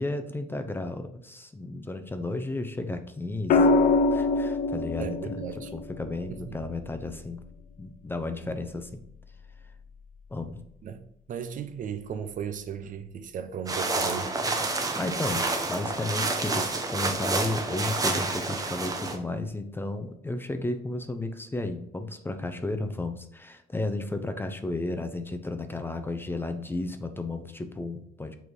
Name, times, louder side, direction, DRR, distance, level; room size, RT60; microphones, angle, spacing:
voice 1, 0.0-3.7 4.1-5.4 5.7-7.4 7.8-8.9 10.3-10.6 14.6-28.4, left 2 dB, 15° left, 0.6 m, -33 dB
sound 1, 3.5-7.6 9.3-9.7, left 3 dB, 55° left, 0.6 m, -25 dB
voice 2, 5.0-5.7 6.5-6.6 10.8-14.8, right 7 dB, 50° right, 0.6 m, -36 dB
sound 2, 13.7-19.2, right 3 dB, 20° right, 0.9 m, -29 dB
6.5 x 3.4 x 4.7 m
cardioid pair, 110°, 17 cm